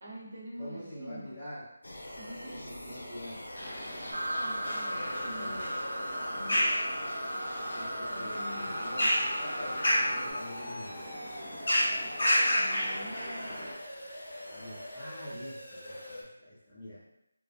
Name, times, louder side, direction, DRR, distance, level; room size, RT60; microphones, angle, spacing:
voice 1, 0.0-1.3 2.1-2.9 3.6-5.8 6.3-6.8 8.0-8.8 12.5-13.6, equal, 35° right, -6 dB, 0.8 m, -46 dB
voice 2, 0.6-1.7 2.4-3.5 4.9-5.6 7.7-11.2 14.5-17.0, left 1 dB, 5° left, -16 dB, 0.4 m, -45 dB
sound 1, 1.8-16.2, left 1 dB, 90° left, 0.7 m, -44 dB
sound 2, 3.6-13.7, equal, 35° left, 1.3 m, -32 dB
sound 3, 4.1-10.3, equal, 75° right, 1.0 m, -36 dB
3.2 x 2.1 x 2.4 m, 0.84 s
figure-of-eight pair, 175°, 0 cm